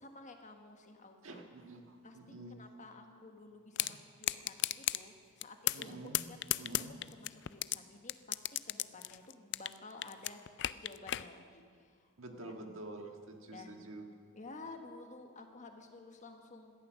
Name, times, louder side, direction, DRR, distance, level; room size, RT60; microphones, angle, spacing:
voice 1, 0.0-1.4 2.0-6.0 6.3-12.1 12.4-12.6 13.5-13.9 14.3-16.7, left 3 dB, 35° left, 4 dB, 1.3 m, -53 dB
voice 2, 1.2-2.7 3.8-4.0 5.7-6.2 6.6-6.9 12.2-14.0, right 2 dB, 65° right, 3 dB, 1.7 m, -48 dB
sound 1, 3.8-3.9 4.2-5.0 5.4-5.9 6.1-7.8 8.1-9.8 10.0-11.2, left 15 dB, 55° left, 0.4 m, -33 dB
17.5 x 12.5 x 6.4 m, 2.1 s
head